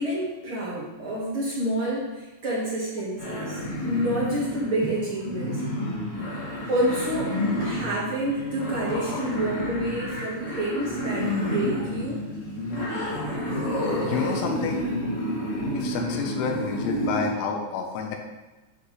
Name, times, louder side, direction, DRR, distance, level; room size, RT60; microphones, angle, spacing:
voice 1, 0.0-5.7 6.7-7.3 7.6-12.2, right 1 dB, 75° right, -7 dB, 1.2 m, -28 dB
sound 1, 3.2-17.3, left 1 dB, 45° left, 3.6 m, -30 dB
sound 2, 4.8-5.2 6.0-7.2 8.9-9.2, equal, 60° left, 3.7 m, -38 dB
voice 2, 14.0-14.9 15.7-18.2, left 5 dB, 80° left, 2 dB, 3.3 m, -29 dB
12.0 x 5.8 x 3.2 m, 1.1 s
omnidirectional pair, 5.2 m